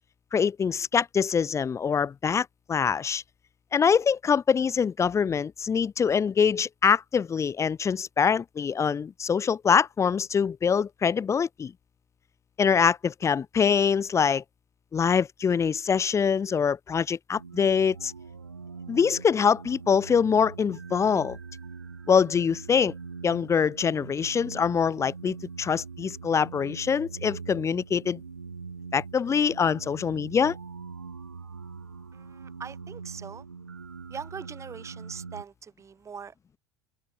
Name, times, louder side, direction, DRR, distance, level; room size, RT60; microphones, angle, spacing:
voice 1, 0.3-3.2 3.7-11.7 12.6-14.4 14.9-18.1 18.9-21.4 22.1-22.9 23.2-28.2 28.9-30.6, left 6 dB, 30° left, 1.7 m, -24 dB
sound 1, 17.3-35.4, right 5 dB, 90° right, 2.3 m, -42 dB
voice 2, 32.1-33.4 34.1-36.6, right 6 dB, 30° right, 3.4 m, -42 dB
open air
figure-of-eight pair, 70°, 10 cm